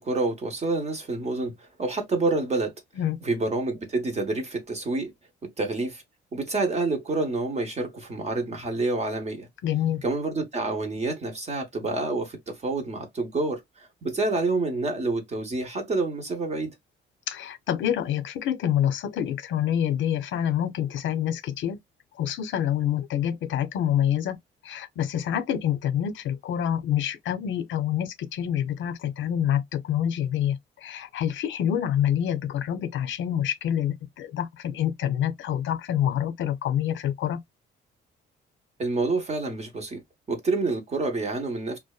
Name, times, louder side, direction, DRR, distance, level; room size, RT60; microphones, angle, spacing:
voice 1, 0.0-2.7 3.2-5.1 5.4-6.0 6.3-9.5 10.0-16.7 38.8-40.0 40.3-41.8, right 3 dB, 35° right, 0.7 m, -28 dB
voice 2, 9.6-10.0 17.3-21.8 22.2-24.4 24.6-37.4, left 10 dB, 70° left, 0.5 m, -27 dB
2.6 x 2.2 x 2.2 m
cardioid pair, 90°, 20 cm